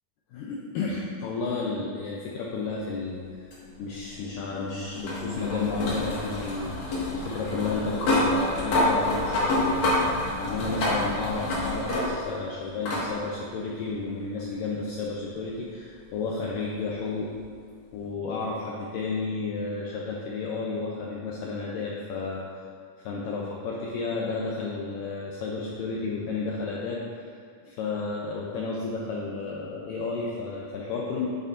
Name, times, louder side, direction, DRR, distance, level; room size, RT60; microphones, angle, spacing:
voice 1, 0.3-3.5 3.8-9.8 10.4-17.3 17.9-22.5 23.0-31.3, left 4 dB, 85° left, -3 dB, 1.9 m, -32 dB
sound 1, 3.5-12.4 12.9-13.1 14.4-14.5 17.4-17.5, left 1 dB, 50° left, 2.6 m, -28 dB
9.1 x 8.7 x 2.6 m, 2.2 s
omnidirectional pair, 4.7 m